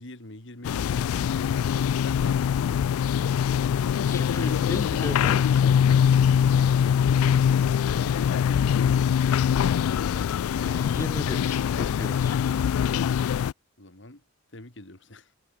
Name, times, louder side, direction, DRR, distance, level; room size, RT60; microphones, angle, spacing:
voice 1, 0.0-3.0 13.8-14.2 14.5-15.3, left 1 dB, 55° left, 2.9 m, -45 dB
sound 1, 0.6-13.5, left 8 dB, 85° left, 0.3 m, -23 dB
voice 2, 4.0-5.7 10.1-12.4, left 1 dB, 15° left, 0.6 m, -36 dB
head